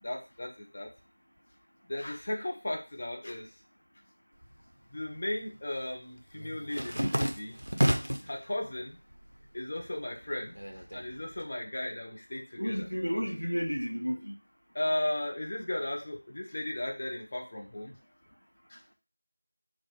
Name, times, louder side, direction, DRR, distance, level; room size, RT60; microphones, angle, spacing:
voice 1, 0.0-0.9 1.9-3.5 4.9-7.6 8.2-9.0 9.5-12.9 14.7-18.0 18.7-18.8, left 1 dB, 25° left, 0.4 m, -36 dB
sound 1, 4.4-5.2 5.5-8.4 8.8-9.5 9.8-11.4, equal, 60° right, 0.4 m, -31 dB
voice 2, 12.6-14.3, equal, 80° left, 0.4 m, -32 dB
2.2 x 2.0 x 3.0 m
figure-of-eight pair, 175°, 0 cm